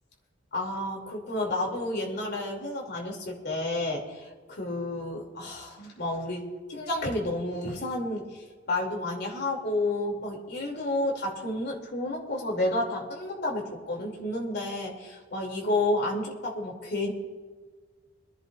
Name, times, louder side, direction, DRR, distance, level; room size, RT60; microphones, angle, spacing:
voice 1, 0.5-6.4 6.7-8.2 8.7-17.1, left 1 dB, 60° left, -1 dB, 2.9 m, -30 dB
26.0 x 10.5 x 2.5 m, 1.5 s
head